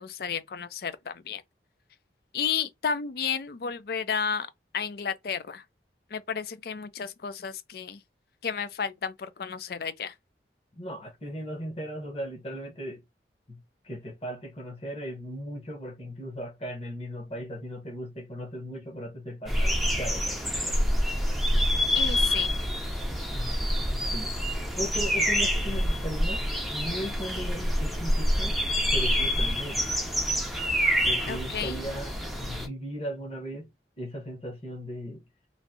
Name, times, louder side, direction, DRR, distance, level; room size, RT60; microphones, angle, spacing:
voice 1, 0.0-1.4 2.3-4.5 4.7-5.6 6.1-8.0 8.4-10.1 21.9-22.5 31.3-31.8, left 6 dB, 55° left, 0.4 m, -32 dB
voice 2, 10.7-13.0 13.5-20.8 23.3-23.6 23.9-24.3 24.8-26.4 26.7-28.6 28.9-29.9 31.0-33.7 34.0-35.2, equal, 35° left, 1.0 m, -37 dB
sound 1, 19.5-32.7, equal, ahead, 0.5 m, -27 dB
3.1 x 2.6 x 2.6 m
head